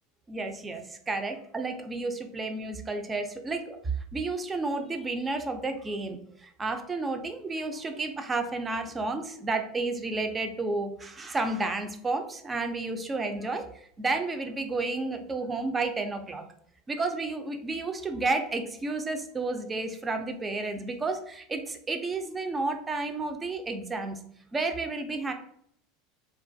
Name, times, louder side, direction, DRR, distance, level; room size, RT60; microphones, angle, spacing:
voice 1, 0.3-3.8 4.1-13.7 14.0-16.4 16.9-24.2 24.5-25.3, right 3 dB, 20° right, 6 dB, 0.4 m, -31 dB
2.3 x 2.2 x 2.5 m, 0.65 s
supercardioid pair, 115°, 0 cm